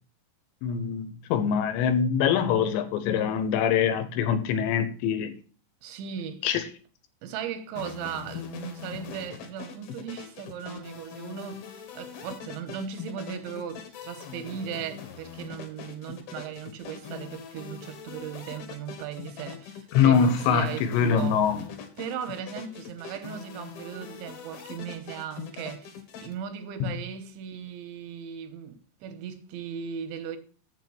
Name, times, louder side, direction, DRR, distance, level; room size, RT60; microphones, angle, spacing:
voice 1, 0.6-5.4 6.4-6.6 19.9-21.6 26.8-26.9, left 7 dB, 80° left, 3.2 m, -24 dB
voice 2, 5.8-6.6 7.2-21.4 22.0-30.4, right 8 dB, 90° right, 3.4 m, -37 dB
sound 1, 7.8-26.3, left 7 dB, 65° left, 3.1 m, -42 dB
7.6 x 7.3 x 6.1 m
omnidirectional pair, 5.2 m